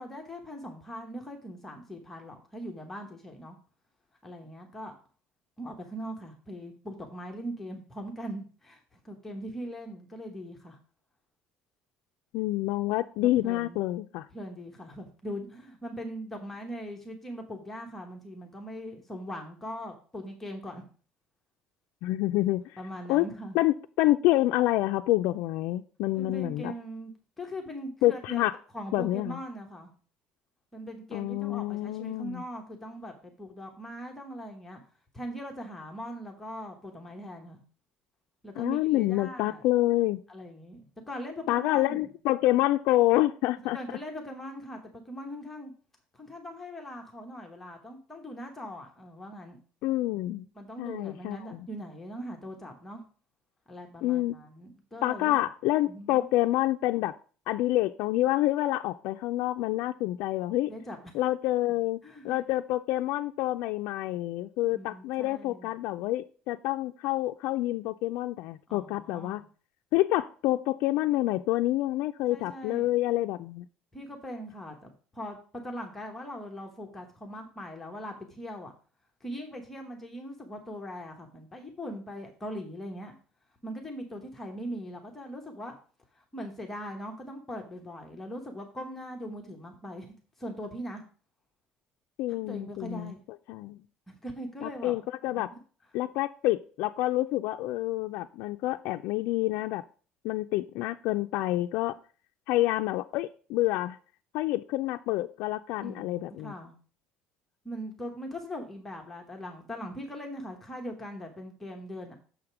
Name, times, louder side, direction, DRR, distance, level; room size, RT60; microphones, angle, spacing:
voice 1, 0.0-3.6 4.2-4.9 5.6-10.8 13.4-13.8 14.3-20.8 22.8-23.6 26.1-27.1 27.4-28.4 28.7-29.9 30.7-34.8 35.1-37.6 38.4-39.6 40.3-42.0 43.6-45.7 46.1-49.6 50.5-53.0 53.7-55.3 55.8-56.3 60.7-61.1 62.0-62.4 64.7-65.7 68.7-69.4 72.3-72.9 73.9-78.7 79.2-83.1 83.6-85.8 86.1-90.1 90.4-91.0 92.4-93.2 94.1-95.0 105.8-106.7 107.6-112.1, equal, 10° left, 2 dB, 1.0 m, -40 dB
voice 2, 12.3-14.3 22.0-22.8 23.1-23.3 23.5-26.7 28.0-28.6 28.9-29.4 31.1-32.4 38.6-40.2 41.5-43.8 49.8-50.5 50.8-51.7 54.0-54.4 55.0-57.1 57.5-60.7 61.1-62.0 62.2-69.4 69.9-73.7 92.2-93.1 93.5-93.8 94.6-95.5 95.9-99.8 100.2-102.0 102.5-104.0 104.3-106.5, left 16 dB, 65° left, 6 dB, 0.3 m, -27 dB
6.8 x 5.0 x 5.9 m, 0.40 s
cardioid pair, 175°, 3 cm